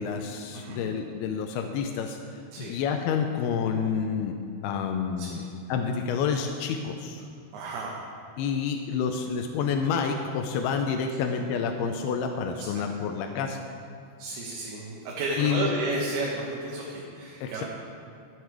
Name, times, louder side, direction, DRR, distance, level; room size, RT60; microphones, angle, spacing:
voice 1, 0.0-2.2 2.6-4.4 4.6-7.2 8.4-13.6 15.4-15.7 17.4-17.6, left 6 dB, 80° left, 4 dB, 2.5 m, -29 dB
voice 2, 0.5-0.9 2.5-2.8 5.2-5.4 7.5-8.0 12.6-13.1 14.2-17.6, right 2 dB, 75° right, -3 dB, 3.1 m, -33 dB
12.5 x 9.3 x 4.8 m, 2.4 s
omnidirectional pair, 4.7 m